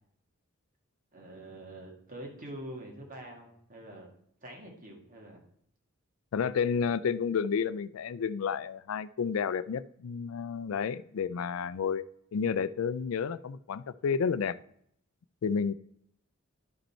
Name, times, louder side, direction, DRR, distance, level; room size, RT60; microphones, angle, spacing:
voice 1, 1.1-4.1 4.4-5.4, right 1 dB, 40° right, 2.1 m, -45 dB
voice 2, 6.3-12.0 12.3-14.6 15.4-15.7, left 6 dB, 90° left, 0.4 m, -31 dB
11.5 x 5.2 x 4.3 m
head